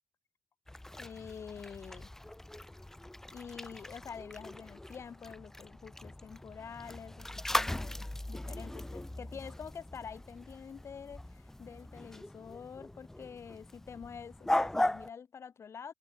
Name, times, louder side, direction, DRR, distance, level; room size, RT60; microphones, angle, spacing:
sound 1, 0.7-15.1, left 1 dB, 5° left, 0.3 m, -39 dB
voice 1, 0.9-2.1 3.3-15.9, left 7 dB, 50° left, 3.1 m, -47 dB
open air
cardioid pair, 95°, 6 cm